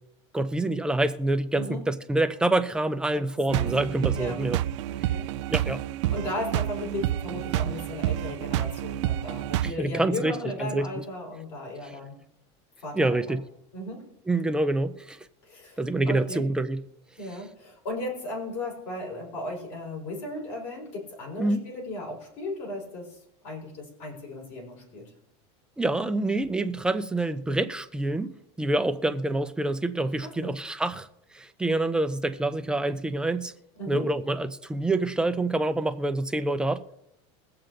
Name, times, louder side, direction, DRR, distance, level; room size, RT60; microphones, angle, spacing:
voice 1, 0.3-4.6 5.5-5.8 9.6-10.9 11.8-12.0 12.9-13.4 14.3-15.2 15.8-16.8 21.4-21.6 25.8-28.3 28.6-31.1 31.3-33.5 33.9-37.0, right 2 dB, 5° right, 0.4 m, -26 dB
sound 1, 3.5-9.7, right 13 dB, 75° right, 0.4 m, -29 dB
voice 2, 4.9-5.3 6.1-12.1 12.8-13.2 13.7-14.0 15.4-16.4 17.2-23.2 23.4-25.0 30.2-30.5 33.8-34.1, left 2 dB, 55° left, 4.3 m, -36 dB
22.0 x 7.7 x 2.5 m
supercardioid pair, 160°, 16 cm